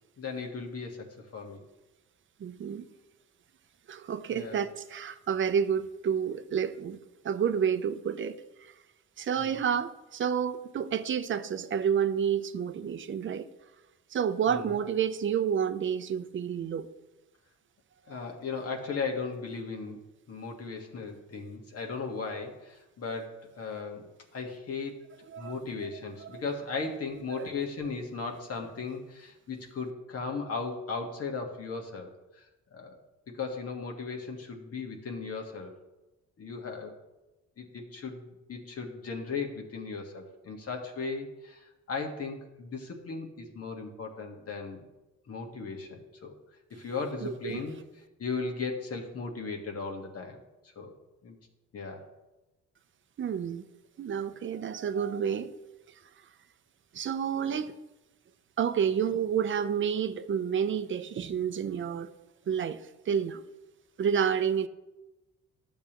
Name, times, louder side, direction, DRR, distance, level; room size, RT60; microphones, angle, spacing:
voice 1, 0.2-1.6 4.3-4.6 9.4-9.6 14.5-14.7 18.1-20.0 20.3-32.5 32.7-33.0 33.3-35.7 36.4-37.0 37.6-44.9 45.3-46.3 46.7-47.8 48.2-50.4 50.7-51.0 51.2-51.4 51.7-52.0, left 4 dB, 50° left, 1.5 m, -37 dB
voice 2, 2.4-2.8 3.9-7.0 7.2-8.4 9.2-13.5 14.1-16.9 25.3-25.6 26.2-26.3 27.3-27.5 47.2-47.6 53.2-53.6 54.0-55.5 56.9-57.7 58.6-62.1 62.5-62.8 63.1-63.4 64.0-64.7, right 8 dB, 40° right, 0.6 m, -29 dB
12.0 x 7.0 x 3.0 m
cardioid pair, 90°, 30 cm